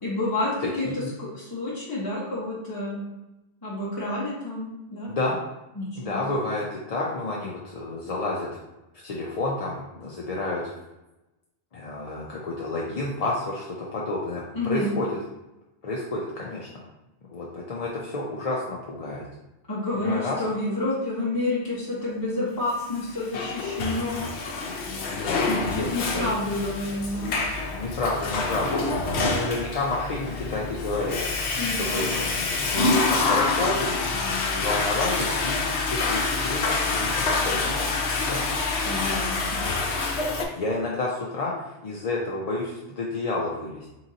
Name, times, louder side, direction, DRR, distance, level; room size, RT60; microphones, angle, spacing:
voice 1, 0.0-0.9 1.2-3.0 3.6-5.1 5.8-6.2 14.5-14.9 19.7-24.3 25.5-27.3 31.6-32.0 38.8-39.6, left 2 dB, 20° left, -8 dB, 0.9 m, -29 dB
voice 2, 0.6-1.1 5.1-5.4 6.0-8.5 9.0-10.7 11.7-15.2 15.8-16.7 17.3-19.2 19.9-20.4 24.9-26.3 27.7-28.8 29.3-31.2 31.8-32.3 32.6-37.8 40.5-43.9, left 2 dB, 45° left, -4 dB, 0.5 m, -30 dB
Water / Toilet flush, 23.0-40.4, left 3 dB, 75° left, 0.9 m, -27 dB
3.8 x 2.9 x 3.8 m, 0.97 s
omnidirectional pair, 1.2 m